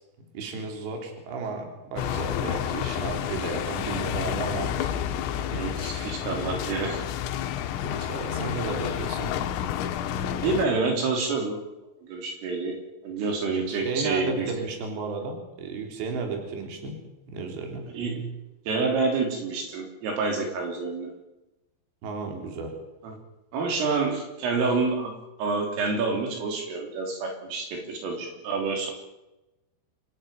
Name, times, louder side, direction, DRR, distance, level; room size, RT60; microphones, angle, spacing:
voice 1, 0.3-4.9 5.3-5.6 5.9-6.2 7.8-9.3 13.7-17.0 17.3-17.8 22.0-22.8, right 4 dB, 60° right, 3 dB, 5.8 m, -34 dB
sound 1, 2.0-10.7, left 10 dB, 85° left, 3.8 m, -30 dB
voice 2, 5.5-7.0 10.4-11.6 12.0-12.8 13.0-14.5 17.9-18.2 18.7-21.1 23.0-23.1 23.5-25.1 25.4-28.9, right 4 dB, 75° right, 3 dB, 6.0 m, -28 dB
28.0 x 15.0 x 9.1 m, 0.97 s
omnidirectional pair, 5.9 m